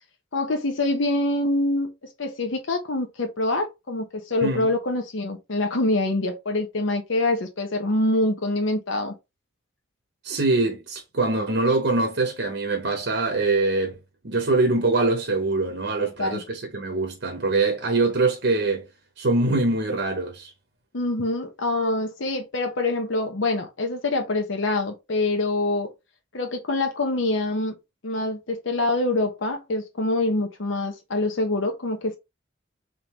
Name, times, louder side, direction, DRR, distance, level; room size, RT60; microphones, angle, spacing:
voice 1, 0.3-9.1 16.0-16.4 20.9-25.9 26.3-27.8 28.0-32.2, left 2 dB, 80° left, 0.9 m, -25 dB
voice 2, 10.2-14.0 14.2-18.9 19.2-20.5, right 3 dB, 60° right, 0.8 m, -23 dB
3.8 x 3.5 x 2.9 m
head